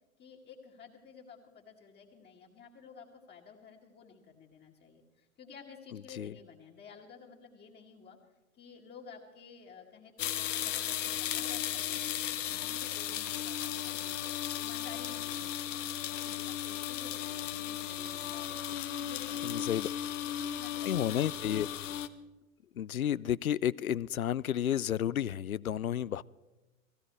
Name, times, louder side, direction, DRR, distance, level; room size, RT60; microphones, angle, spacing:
voice 1, 0.2-8.2 8.5-12.3 12.6-14.2 14.5-18.6 18.9-21.2 21.8-22.3, left 5 dB, 25° left, 2.0 m, -53 dB
voice 2, 5.9-6.3 19.4-19.9 20.8-21.7 22.7-26.2, left 10 dB, 85° left, 0.5 m, -31 dB
sound 1, 10.2-22.1, left 11 dB, 60° left, 1.0 m, -36 dB
18.0 x 15.5 x 4.7 m
figure-of-eight pair, 100°, 41 cm